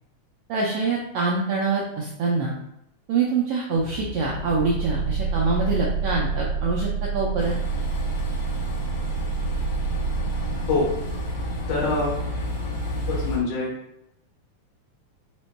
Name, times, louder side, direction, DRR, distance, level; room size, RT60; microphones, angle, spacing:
voice 1, 0.5-2.5 3.1-6.9 7.1-7.5, right 4 dB, 90° right, -3 dB, 1.3 m, -25 dB
sound 1, 3.7-13.4, right 4 dB, 50° right, 1.7 m, -28 dB
Train, 7.4-13.4, left 2 dB, 65° left, 1.8 m, -35 dB
voice 2, 11.7-12.2 13.1-13.7, left 3 dB, 85° left, -4 dB, 2.6 m, -24 dB
5.3 x 2.2 x 4.1 m, 0.83 s
omnidirectional pair, 3.5 m